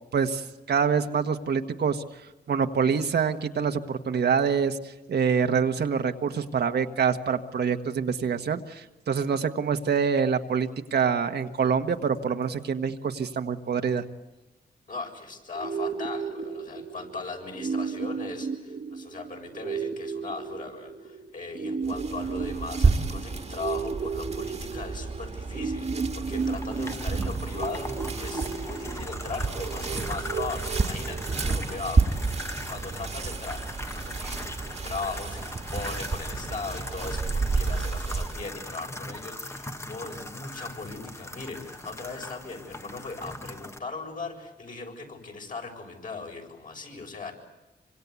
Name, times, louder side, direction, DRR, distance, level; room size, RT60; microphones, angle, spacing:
voice 1, 0.1-2.0 2.5-14.0, right 6 dB, 70° right, 6 dB, 1.5 m, -26 dB
voice 2, 14.9-33.6 33.9-47.3, left 4 dB, 50° left, 2 dB, 7.3 m, -38 dB
sound 1, 15.6-31.5, right 5 dB, 55° right, 1.4 m, -34 dB
sound 2, 21.8-38.5, right 4 dB, 40° right, 1.8 m, -30 dB
sound 3, 26.3-43.8, left 1 dB, 15° left, 1.3 m, -40 dB
26.5 x 25.5 x 8.4 m, 1.1 s
wide cardioid pair, 115°, 17 cm